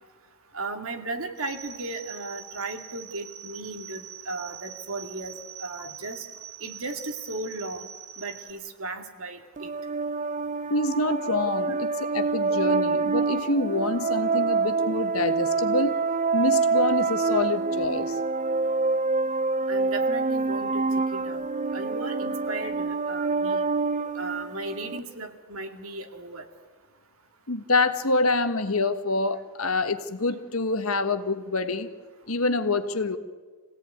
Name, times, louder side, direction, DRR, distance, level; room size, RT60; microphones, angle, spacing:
voice 1, 0.5-5.3 5.6-6.2 6.6-7.9 8.2-9.7 19.7-21.4 21.7-23.6 24.1-26.5, right 2 dB, 75° right, 5 dB, 2.4 m, -36 dB
sound 1, 1.4-8.5, right 9 dB, 50° right, 3.1 m, -43 dB
sound 2, 9.6-25.0, right 4 dB, 35° right, 0.6 m, -26 dB
voice 2, 10.7-16.0 16.3-18.2 24.0-24.2 27.5-31.9 32.3-33.2, left 2 dB, 85° left, 9 dB, 1.5 m, -26 dB
24.5 x 17.0 x 9.4 m, 1.4 s
head